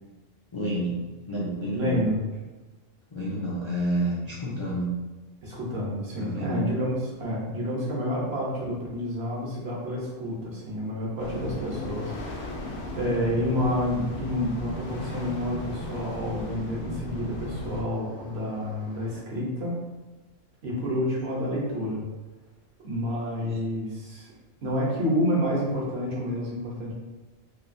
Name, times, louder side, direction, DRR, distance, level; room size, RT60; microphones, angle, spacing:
voice 1, 0.5-2.0 3.1-4.9 6.1-6.7 11.3-11.5 23.4-23.6, right 1 dB, 45° left, -8 dB, 0.4 m, -30 dB
voice 2, 1.7-2.2 5.4-12.5 13.0-19.8 20.6-22.0 22.8-24.3 24.6-26.9, equal, 60° right, -5 dB, 0.9 m, -29 dB
sound 1, 9.3-19.2, equal, 85° left, 1.1 m, -50 dB
sound 2, 11.2-17.8, left 1 dB, 65° left, 0.7 m, -35 dB
3.1 x 2.3 x 2.5 m, 1.2 s
omnidirectional pair, 1.3 m